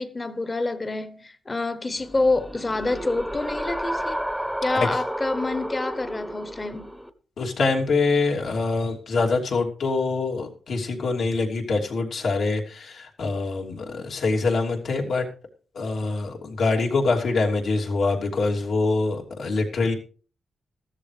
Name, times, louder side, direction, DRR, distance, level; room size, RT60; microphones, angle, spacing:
voice 1, 0.0-4.2 4.6-6.9, left 2 dB, 25° left, 1.0 m, -27 dB
sound 1, 2.0-7.1, equal, ahead, 0.8 m, -31 dB
voice 2, 7.4-15.3 15.7-19.9, left 3 dB, 70° left, 3.0 m, -24 dB
15.0 x 13.5 x 3.3 m
wide cardioid pair, 135°, 0 cm